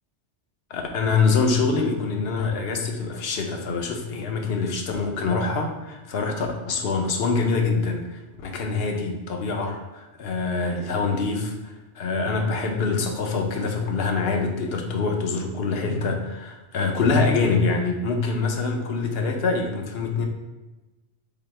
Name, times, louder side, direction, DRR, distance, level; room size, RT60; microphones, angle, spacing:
voice 1, 0.7-20.3, left 4 dB, 65° left, 3 dB, 0.8 m, -25 dB
4.1 x 3.7 x 3.2 m, 1.1 s
omnidirectional pair, 1.2 m